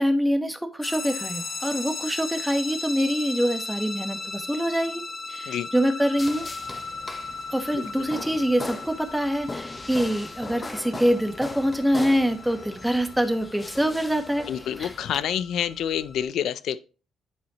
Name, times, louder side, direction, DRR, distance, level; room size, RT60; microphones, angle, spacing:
voice 1, 0.0-5.0 5.3-6.5 7.5-14.9, equal, 5° right, 1.0 m, -25 dB
sound 1, 0.8-16.2, left 3 dB, 60° left, 1.5 m, -37 dB
sound 2, 6.2-15.2, left 2 dB, 20° left, 0.7 m, -39 dB
voice 2, 14.5-16.8, left 10 dB, 75° left, 0.3 m, -28 dB
10.5 x 4.2 x 2.8 m
cardioid pair, 90°, 0 cm